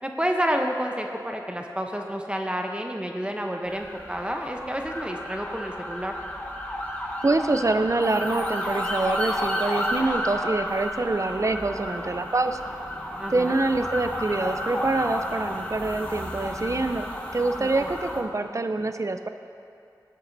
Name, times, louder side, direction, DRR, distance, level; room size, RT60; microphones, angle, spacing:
voice 1, 0.0-6.1 13.2-13.6 17.6-17.9, equal, 15° right, 2 dB, 0.8 m, -29 dB
sound 1, 3.6-18.2, equal, 15° left, 1.3 m, -32 dB
voice 2, 7.2-12.7 13.3-17.1 17.3-19.3, right 2 dB, 40° right, 8 dB, 0.5 m, -25 dB
17.5 x 7.5 x 2.7 m, 2.4 s
wide cardioid pair, 50°, 8 cm